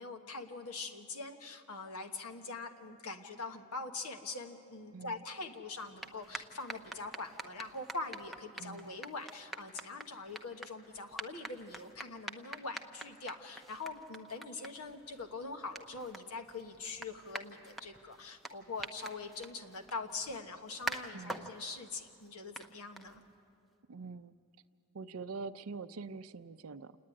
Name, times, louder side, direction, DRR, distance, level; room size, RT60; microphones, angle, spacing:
voice 1, 0.0-23.2, left 3 dB, 85° left, 5 dB, 1.3 m, -43 dB
voice 2, 4.9-5.2 8.6-8.9 21.1-21.5 23.9-24.4 24.9-27.0, right 4 dB, 70° right, 12 dB, 0.5 m, -44 dB
sound 1, 5.8-23.5, right 1 dB, ahead, 0.6 m, -47 dB
28.0 x 9.6 x 9.9 m, 2.5 s
head